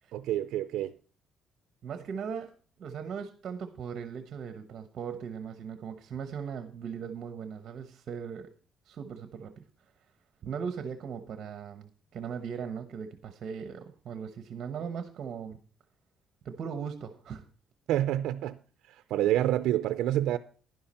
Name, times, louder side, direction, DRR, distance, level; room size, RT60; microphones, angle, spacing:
voice 1, 0.1-0.9 17.9-18.6 18.9-20.4, right 12 dB, 70° right, 0.4 m, -28 dB
voice 2, 1.8-8.5 8.8-9.9 10.4-15.6 16.4-17.4, right 6 dB, 40° right, 1.0 m, -39 dB
11.5 x 11.0 x 4.3 m
cardioid pair, 165°, 0 cm